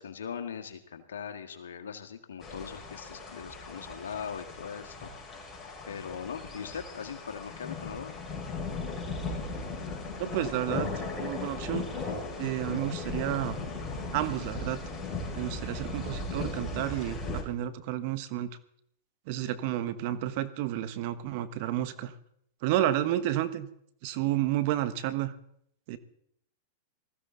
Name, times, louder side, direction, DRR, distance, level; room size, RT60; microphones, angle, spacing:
voice 1, 0.0-5.1 5.9-8.2, left 7 dB, 80° left, 7 dB, 1.8 m, -40 dB
sound 1, 2.4-17.4, left 3 dB, 20° left, 5.3 m, -37 dB
voice 2, 10.2-10.9 11.2-11.9 12.4-13.6 14.1-14.8 15.3-18.5 19.3-22.1 22.6-23.7 24.0-25.3 25.9-26.0, right 13 dB, 55° right, 13 dB, 1.3 m, -31 dB
20.0 x 14.5 x 3.9 m, 0.69 s
hypercardioid pair, 110°, 0 cm